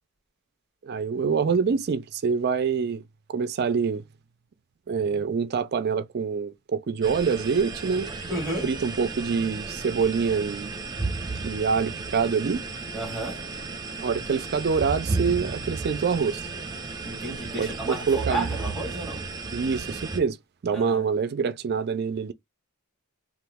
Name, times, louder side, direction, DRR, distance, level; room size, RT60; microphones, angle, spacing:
voice 1, 0.8-3.0 3.3-4.0 4.9-8.1 8.6-10.7 11.4-12.6 14.0-16.4 17.6-18.5 19.5-20.4 20.6-22.3, right 5 dB, 50° right, 0.4 m, -25 dB
sound 1, 7.0-20.2, right 3 dB, 20° right, 0.7 m, -33 dB
voice 2, 8.3-8.7 12.9-13.5 17.0-19.2 20.7-21.1, right 2 dB, ahead, 1.6 m, -32 dB
3.0 x 2.5 x 3.4 m
head